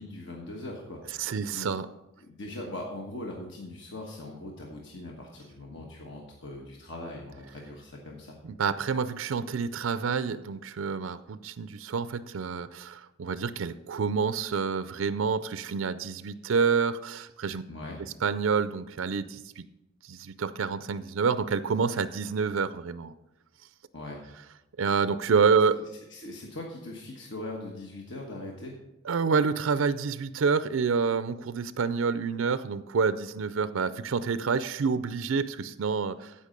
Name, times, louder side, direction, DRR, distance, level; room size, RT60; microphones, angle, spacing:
voice 1, 0.0-1.7 2.2-8.4 17.7-18.0 23.9-24.2 26.1-28.8, left 1 dB, 65° left, 0 dB, 1.3 m, -41 dB
voice 2, 1.2-1.9 8.4-17.6 18.2-19.6 20.0-23.1 24.8-25.8 29.0-36.3, right 5 dB, 90° right, 14 dB, 0.4 m, -28 dB
15.0 x 5.4 x 5.2 m, 0.93 s
head